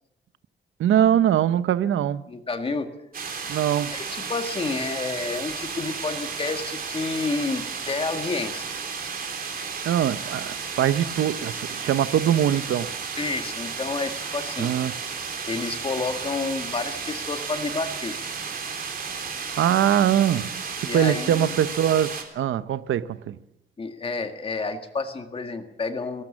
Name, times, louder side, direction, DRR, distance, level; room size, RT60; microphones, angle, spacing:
voice 1, 0.8-2.2 3.5-3.9 9.8-12.9 14.6-15.0 19.6-23.4, right 10 dB, 80° right, 0.9 m, -22 dB
voice 2, 2.3-2.9 3.9-8.7 13.2-14.7 15.5-18.2 20.9-21.5 23.8-26.2, left 3 dB, 25° left, 1.8 m, -30 dB
sound 1, 3.1-22.2, right 5 dB, 45° right, 3.6 m, -33 dB
19.5 x 18.5 x 7.4 m
wide cardioid pair, 175°, 20 cm